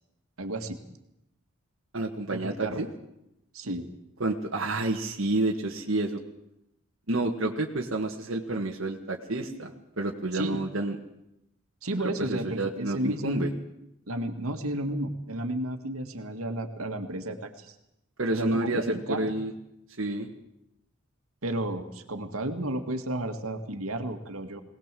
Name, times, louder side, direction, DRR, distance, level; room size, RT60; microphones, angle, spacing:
voice 1, 0.4-0.8 2.3-2.8 3.5-3.9 10.3-10.6 11.8-13.5 14.1-17.7 18.3-19.3 21.4-24.6, right 1 dB, 85° right, 6 dB, 2.1 m, -32 dB
voice 2, 1.9-2.9 4.2-6.2 7.1-11.0 12.0-13.5 18.2-19.5 20.0-20.3, right 2 dB, 65° right, 0 dB, 1.7 m, -29 dB
22.0 x 18.5 x 7.7 m, 0.84 s
head